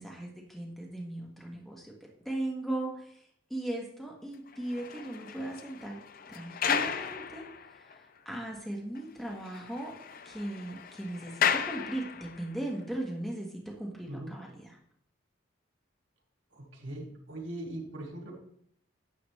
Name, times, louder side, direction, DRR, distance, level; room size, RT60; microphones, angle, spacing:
voice 1, 0.0-1.9 2.2-3.2 3.5-6.0 6.3-7.5 7.7-9.9 10.2-14.8, right 1 dB, ahead, -1 dB, 1.3 m, -38 dB
sound 1, 4.5-8.0 8.5-8.6 8.9-9.0 9.3-12.6, left 7 dB, 50° left, 0.5 m, -34 dB
voice 2, 16.5-18.3, right 1 dB, 85° right, -3 dB, 2.7 m, -40 dB
9.7 x 7.0 x 3.2 m, 0.67 s
head